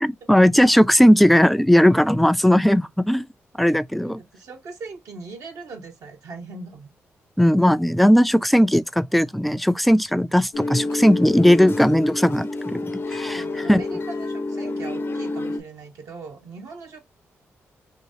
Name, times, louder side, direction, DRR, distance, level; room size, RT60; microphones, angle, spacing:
voice 1, 0.0-3.3 3.6-4.2 7.4-13.4 13.7-13.8, equal, ahead, 0.3 m, -17 dB
voice 2, 4.0-6.9 13.3-17.0, right 3 dB, 70° right, 1.0 m, -40 dB
sound 1, 10.5-15.6, left 2 dB, 45° left, 0.6 m, -28 dB
2.9 x 2.3 x 2.7 m
supercardioid pair, 45°, 6 cm